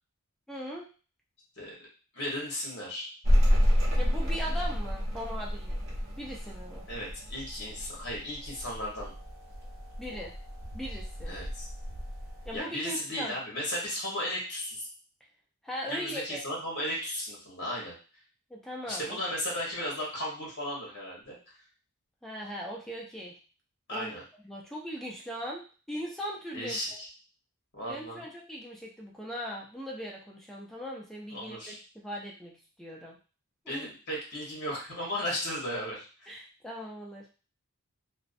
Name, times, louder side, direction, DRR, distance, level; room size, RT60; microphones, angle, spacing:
voice 1, 0.5-0.9 4.0-5.8 6.2-6.9 10.0-10.3 10.7-11.4 12.5-13.4 15.6-16.5 18.5-19.4 22.2-23.4 23.9-24.1 24.4-26.8 27.9-32.5 32.8-33.2 33.7-33.9 36.3-37.3, equal, ahead, -3 dB, 0.3 m, -39 dB
voice 2, 2.1-3.1 6.9-9.1 10.1-10.2 11.2-11.7 12.5-14.9 15.9-17.9 18.9-21.4 23.9-24.2 26.5-27.1 27.7-28.2 31.3-31.8 33.7-36.3, equal, 50° left, -3 dB, 0.9 m, -35 dB
sound 1, 3.2-12.6, equal, 60° right, 0.6 m, -30 dB
2.5 x 2.0 x 2.4 m, 0.36 s
head